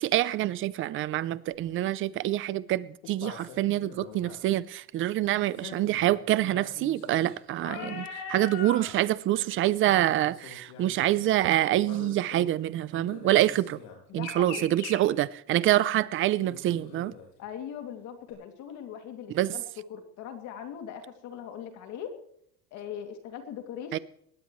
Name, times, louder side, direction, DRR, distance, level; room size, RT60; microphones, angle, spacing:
voice 1, 0.0-13.8 14.1-17.1 19.3-19.5 23.9-24.0, right 14 dB, 35° right, 0.5 m, -26 dB
sound 1, 1.5-1.6 3.0-4.4 5.5-8.9 9.3-9.5 9.8-11.3 11.8-12.5 12.9-15.0 16.4-17.5 18.3-18.4, left 5 dB, 80° left, 7.5 m, -43 dB
voice 2, 7.8-8.1 14.1-14.7 17.4-19.6 19.9-22.1 22.7-24.0, left 8 dB, 50° left, 2.6 m, -40 dB
21.5 x 18.5 x 3.2 m
cardioid pair, 175°, 37 cm